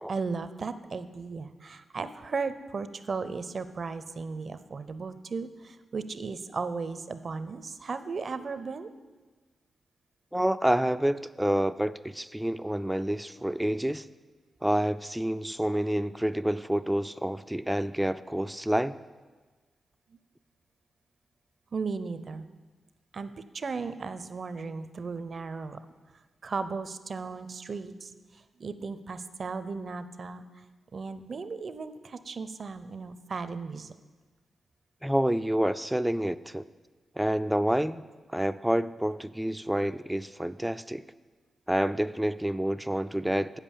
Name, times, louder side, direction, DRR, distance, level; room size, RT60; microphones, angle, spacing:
voice 1, 0.1-8.9 21.7-22.5 23.1-25.8 26.4-28.1 28.6-30.4 30.9-33.9, right 4 dB, 55° right, 12 dB, 0.6 m, -36 dB
voice 2, 10.3-14.1 14.6-19.0 35.0-36.6 37.2-38.1 38.3-41.0 41.7-43.6, right 1 dB, 5° right, 13 dB, 0.3 m, -28 dB
8.1 x 7.4 x 7.0 m, 1.3 s
cardioid pair, 55°, 0 cm